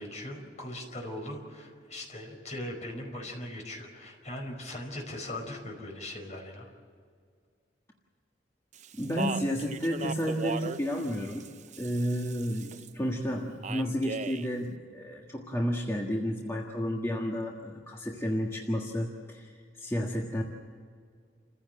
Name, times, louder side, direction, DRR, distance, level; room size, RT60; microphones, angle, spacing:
voice 1, 0.0-6.7, left 1 dB, 40° left, 2 dB, 5.0 m, -40 dB
Speech, 8.7-12.9 13.6-14.5, right 4 dB, 40° right, 0.6 m, -38 dB
voice 2, 8.9-11.5 11.8-20.4, equal, 15° left, -1 dB, 1.6 m, -31 dB
29.0 x 15.5 x 7.7 m, 2.1 s
head